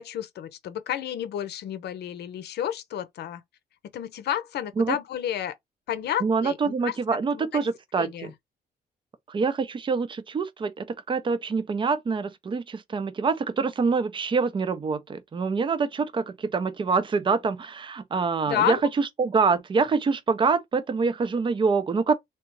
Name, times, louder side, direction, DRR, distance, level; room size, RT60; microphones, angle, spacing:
voice 1, 0.0-3.4 3.9-5.5 5.9-6.9 7.3-7.7 8.0-8.3 18.5-18.8, left 10 dB, 75° left, 0.7 m, -31 dB
voice 2, 6.2-8.3 9.3-22.1, right 4 dB, 30° right, 0.5 m, -25 dB
3.3 x 2.8 x 3.0 m
cardioid pair, 135°, 17 cm